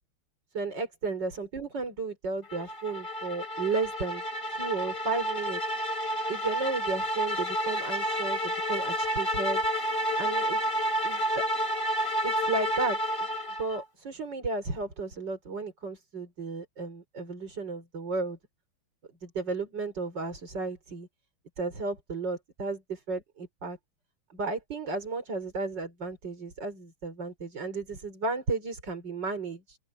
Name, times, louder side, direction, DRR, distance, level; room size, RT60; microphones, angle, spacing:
voice 1, 0.5-5.6 6.3-9.6 10.2-10.6 11.0-11.2 12.2-13.3 13.6-18.4 19.2-21.1 21.6-23.8 24.3-29.8, right 3 dB, 60° right, 5.4 m, -33 dB
sound 1, 2.5-13.8, equal, 25° left, 4.2 m, -30 dB
open air
omnidirectional pair, 2.2 m